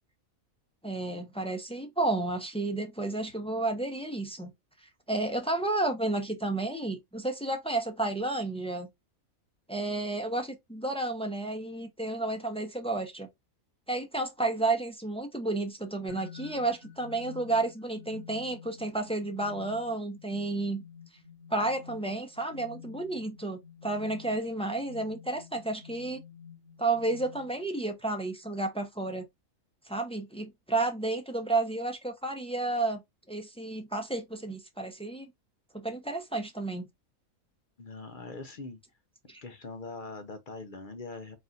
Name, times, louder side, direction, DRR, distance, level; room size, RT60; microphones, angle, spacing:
voice 1, 0.8-4.5 4.8-8.9 9.7-13.3 13.9-20.8 21.5-26.2 26.8-29.2 29.9-33.0 33.3-35.3 35.7-36.9 39.3-39.4, right 2 dB, 10° left, 0.3 m, -31 dB
sound 1, 16.1-27.8, left 7 dB, 50° right, 1.6 m, -50 dB
voice 2, 37.8-38.8 39.4-41.4, left 3 dB, 50° left, 0.7 m, -42 dB
4.0 x 2.5 x 3.9 m
omnidirectional pair, 1.5 m